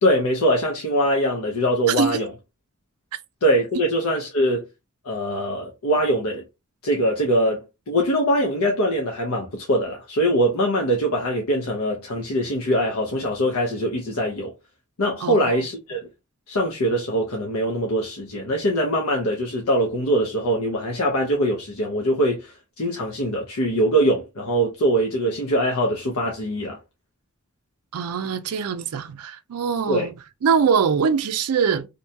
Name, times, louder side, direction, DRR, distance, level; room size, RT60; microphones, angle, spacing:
voice 1, 0.0-2.3 3.4-4.7 5.0-6.4 6.8-14.5 15.0-16.0 16.5-26.8 29.9-30.1, equal, 80° left, 0.7 m, -22 dB
voice 2, 1.9-2.2 15.2-15.7 27.9-30.1 30.4-31.9, right 6 dB, 90° right, 0.4 m, -23 dB
2.7 x 2.2 x 2.7 m
head